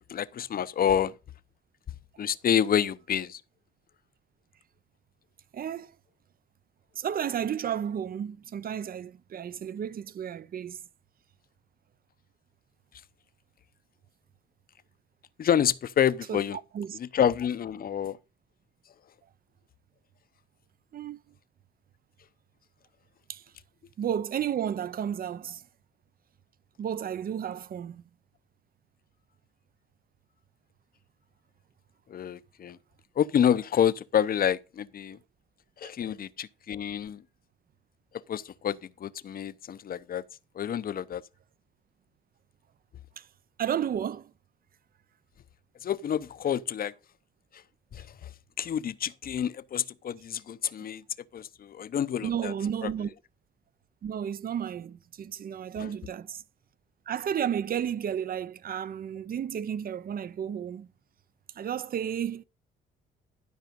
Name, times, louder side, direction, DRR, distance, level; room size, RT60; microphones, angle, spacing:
voice 1, 0.1-1.1 2.2-3.4 15.4-16.6 16.9-18.2 32.1-32.8 33.2-35.2 35.8-37.2 38.3-40.2 40.5-41.2 45.8-46.9 47.9-48.3 48.6-51.0 51.3-52.5 52.8-52.9 55.8-55.9, left 9 dB, 50° left, 0.7 m, -28 dB
voice 2, 5.5-5.9 7.0-10.8 16.3-16.4 16.7-17.0 20.9-21.2 23.3-23.4 24.0-25.7 26.8-28.0 35.8-35.9 43.2-43.3 43.6-44.3 52.2-53.1 54.0-56.4 57.1-60.9 61.6-62.4, right 9 dB, 45° right, 0.6 m, -32 dB
12.0 x 5.0 x 5.1 m
cardioid pair, 90°, 20 cm